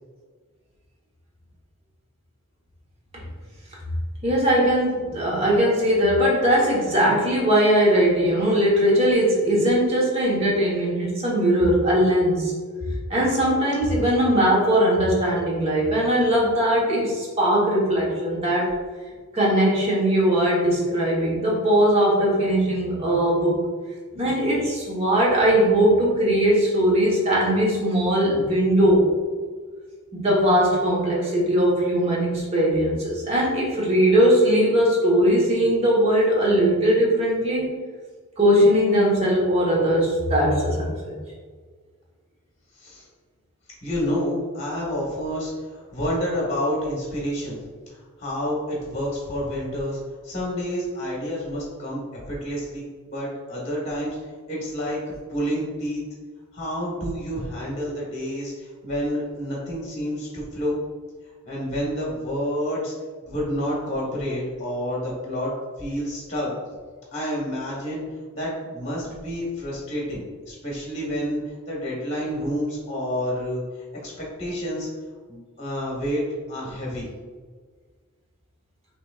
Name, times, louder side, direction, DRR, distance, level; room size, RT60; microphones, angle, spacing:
voice 1, 4.2-12.5 13.1-18.8 19.3-23.6 24.1-29.1 30.1-37.7 38.4-41.1, equal, 25° right, -4 dB, 1.0 m, -20 dB
voice 2, 43.8-50.0 50.2-54.2 54.5-56.0 56.5-60.8 61.4-62.9 63.2-65.5 65.8-66.5 67.1-68.0 68.3-73.6 74.0-74.1 74.4-74.9 75.3-77.1, equal, 30° left, -5 dB, 1.2 m, -29 dB
5.8 x 3.0 x 2.3 m, 1.6 s
head